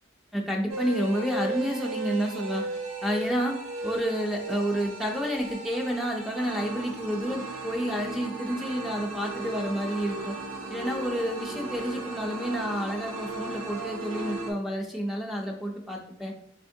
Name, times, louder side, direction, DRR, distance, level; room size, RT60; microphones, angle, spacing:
voice 1, 0.3-2.6 3.0-3.6 3.8-10.4 10.7-16.3, equal, ahead, 1 dB, 0.3 m, -30 dB
sound 1, 0.7-14.5, right 2 dB, 90° right, 0.6 m, -36 dB
3.5 x 2.8 x 2.6 m, 0.71 s
head